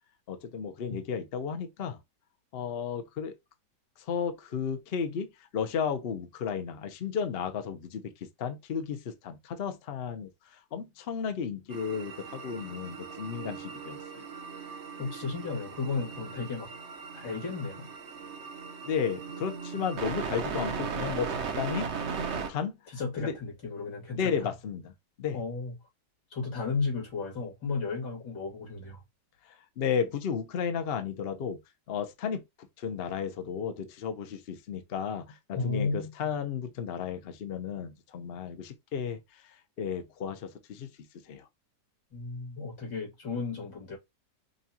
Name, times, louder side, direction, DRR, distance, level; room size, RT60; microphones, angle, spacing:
voice 1, 0.3-2.0 2.5-3.4 4.1-5.3 5.5-8.1 8.4-10.3 10.7-14.3 18.8-22.1 22.5-22.7 23.2-23.4 24.2-24.9 25.2-25.4 29.8-31.6 31.9-32.4 32.8-39.2 39.8-40.9 41.3-41.5, left 7 dB, 55° left, 0.6 m, -33 dB
sound 1, 11.7-22.5, right 6 dB, 55° right, 0.8 m, -38 dB
voice 2, 15.0-16.7 17.1-17.9 22.9-24.5 25.3-25.7 26.3-29.0 35.5-36.3 42.1-44.0, left 4 dB, 75° left, 2.9 m, -34 dB
5.3 x 2.3 x 2.7 m
omnidirectional pair, 1.8 m